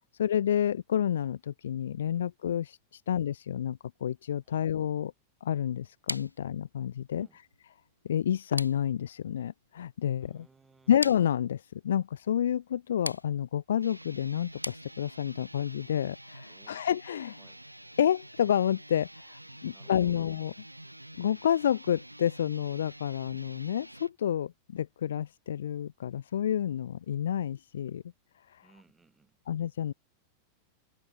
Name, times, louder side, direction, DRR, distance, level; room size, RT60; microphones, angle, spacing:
voice 1, 0.2-5.1 5.4-7.3 8.0-10.4 10.9-17.4 18.0-20.5 21.2-28.0 28.5-28.6 29.5-29.9, left 9 dB, 65° left, 0.3 m, -29 dB
sound 1, 6.1-15.4, left 1 dB, 85° left, 1.6 m, -43 dB
voice 2, 10.2-10.9 16.5-16.9 17.3-17.6 19.7-20.2 28.6-29.4, right 4 dB, 10° right, 5.9 m, -62 dB
sound 2, 13.7-24.1, right 1 dB, 85° right, 3.1 m, -49 dB
figure-of-eight pair, 90°, 0 cm